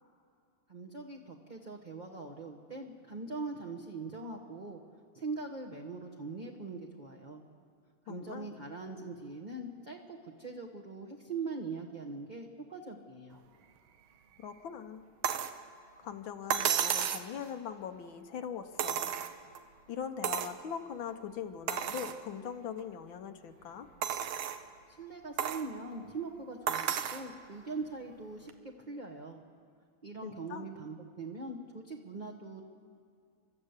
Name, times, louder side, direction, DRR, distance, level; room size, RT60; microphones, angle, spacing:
voice 1, 0.7-4.8 5.1-7.4 8.0-13.4 24.9-29.4 30.0-32.7, right 3 dB, 25° right, 0 dB, 1.1 m, -42 dB
voice 2, 8.1-8.5 14.4-15.0 16.0-19.1 19.9-23.9 30.2-30.7, left 8 dB, 75° left, 7 dB, 1.7 m, -41 dB
sound 1, 15.2-15.6 16.5-17.3 18.8-19.6 20.2-20.6 21.1-21.2 21.7-22.2 22.8-22.9 24.0-24.6 25.4-25.7 26.7-27.3 28.5-28.6, right 9 dB, 85° right, 1.8 m, -32 dB
30.0 x 13.0 x 8.2 m, 2.4 s
omnidirectional pair, 2.2 m